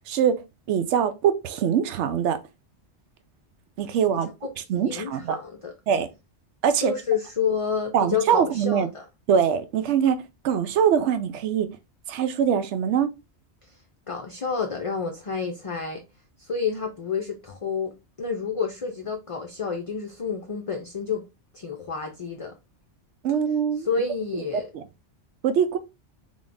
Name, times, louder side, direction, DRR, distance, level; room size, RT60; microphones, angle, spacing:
voice 1, 0.7-2.4 3.8-4.3 4.7-5.4 5.9-6.1 6.6-6.9 7.9-8.9 9.3-10.2 10.4-11.7 12.1-13.1 23.2-23.9 24.5-24.8 25.4-25.8, right 8 dB, 80° right, 0.9 m, -23 dB
voice 2, 4.1-4.5 4.8-5.7 6.8-9.0 14.1-16.0 16.4-21.2 21.5-22.5 23.8-24.7, left 6 dB, 40° left, 0.5 m, -29 dB
3.5 x 3.5 x 2.5 m
omnidirectional pair, 1.2 m